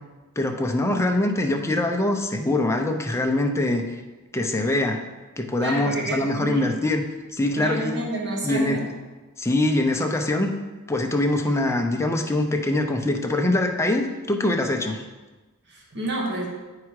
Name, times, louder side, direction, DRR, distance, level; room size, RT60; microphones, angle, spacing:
voice 1, 0.4-3.8 4.3-5.0 5.4-7.0 7.3-8.0 8.4-8.8 9.4-10.5 10.9-15.0, left 1 dB, 10° left, 3 dB, 0.6 m, -23 dB
voice 2, 5.6-6.6 7.5-8.8 15.7-16.5, right 1 dB, 50° right, -2 dB, 1.5 m, -29 dB
8.5 x 4.8 x 4.8 m, 1.2 s
head